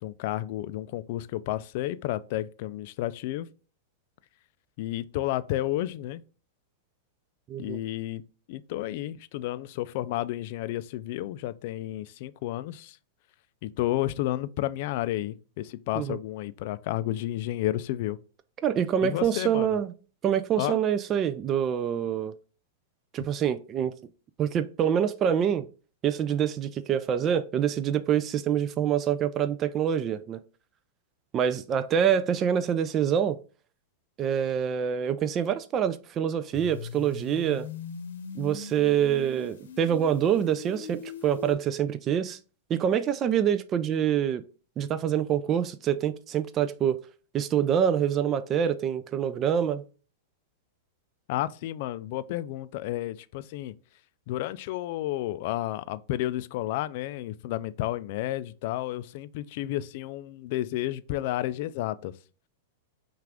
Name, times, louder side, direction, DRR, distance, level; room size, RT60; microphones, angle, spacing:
voice 1, 0.0-3.5 4.8-6.2 7.6-8.2 8.5-13.0 13.6-18.2 19.0-19.8 20.6-20.8 51.3-53.7 54.3-62.1, left 14 dB, 55° left, 0.3 m, -31 dB
voice 2, 7.5-7.8 16.0-16.2 18.6-19.9 20.2-22.3 23.1-24.0 24.4-25.7 26.0-30.4 31.3-33.4 34.2-37.7 38.4-42.4 42.7-44.4 44.8-47.0 47.3-49.8, right 9 dB, 30° right, 0.3 m, -26 dB
sound 1, 36.5-41.5, left 5 dB, 80° left, 0.9 m, -41 dB
5.8 x 2.4 x 3.5 m
hypercardioid pair, 125°, 0 cm